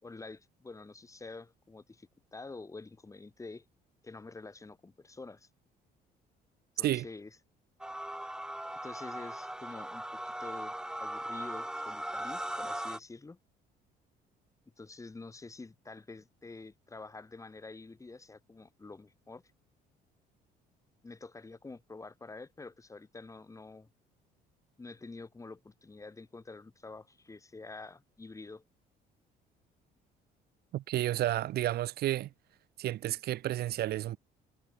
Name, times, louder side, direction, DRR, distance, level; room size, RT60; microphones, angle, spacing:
voice 1, 0.0-3.7 4.0-5.5 6.8-7.3 8.8-13.4 14.8-19.4 21.0-23.9 24.8-28.6, left 3 dB, 20° left, 5.7 m, -47 dB
sound 1, 7.8-13.0, right 1 dB, 5° right, 2.7 m, -39 dB
voice 2, 30.7-32.3 32.8-34.2, right 14 dB, 70° right, 1.8 m, -31 dB
cardioid pair, 110°, 17 cm